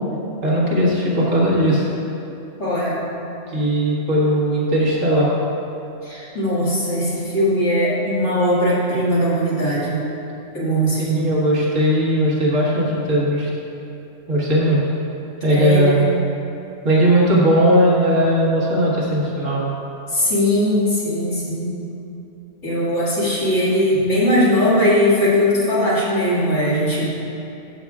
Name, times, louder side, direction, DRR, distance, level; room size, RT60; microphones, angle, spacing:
voice 1, 0.4-1.9 3.5-5.3 11.0-13.5 14.3-14.8 15.4-16.1 16.8-19.7, right 1 dB, 80° right, -6 dB, 2.0 m, -18 dB
voice 2, 2.6-3.1 6.0-10.0 10.5-11.3 15.5-16.1 20.1-21.8 22.6-27.2, equal, 65° left, -8 dB, 2.4 m, -19 dB
12.5 x 7.1 x 2.4 m, 2.8 s
omnidirectional pair, 1.3 m